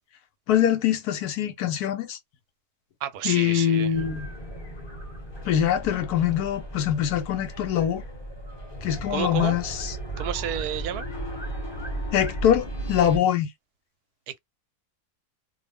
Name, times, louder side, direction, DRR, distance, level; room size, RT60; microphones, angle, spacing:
voice 1, 0.5-2.2 3.2-4.3 5.4-8.0 8.8-9.9 12.1-13.5, left 10 dB, 85° left, 1.2 m, -23 dB
voice 2, 3.0-4.0 9.1-9.6 10.2-11.1, right 10 dB, 85° right, 1.1 m, -31 dB
sound 1, 3.9-13.2, right 1 dB, 20° left, 0.9 m, -35 dB
2.8 x 2.1 x 3.3 m
omnidirectional pair, 1.6 m